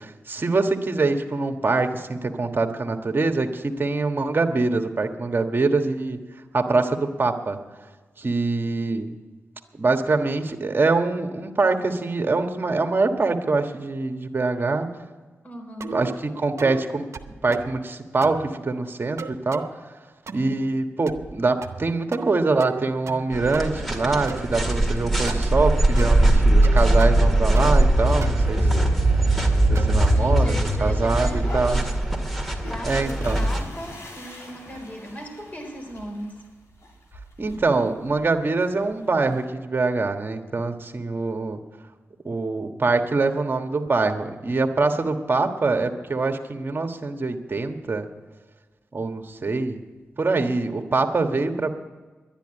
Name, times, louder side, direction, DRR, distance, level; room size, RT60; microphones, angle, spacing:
voice 1, 0.0-6.2 6.5-7.6 8.2-9.1 9.7-14.9 15.9-19.6 20.3-28.9 29.2-29.3 29.7-31.8 32.8-33.4 37.4-41.6 42.2-48.1 48.9-49.8 50.2-51.7, right 3 dB, 45° right, 5 dB, 1.4 m, -24 dB
voice 2, 15.4-16.0 30.1-32.0 32.7-36.4, equal, 35° left, 3 dB, 3.9 m, -38 dB
sound 1, 15.8-16.2 16.6-16.8 17.1-17.8 18.2-18.5 19.2-19.7 20.3-20.6 21.1-21.4 21.6-22.3 22.6-23.3 23.5-24.4 25.3-25.5 26.0-26.2 26.6-27.3 27.6-27.9 28.2-30.0, right 5 dB, 70° right, 0.7 m, -36 dB
sound 2, 23.3-33.6, right 1 dB, 5° left, 2.1 m, -20 dB
sound 3, 31.2-39.4, left 1 dB, 70° left, 2.8 m, -43 dB
11.0 x 10.5 x 8.9 m, 1.3 s
cardioid pair, 55°, 5 cm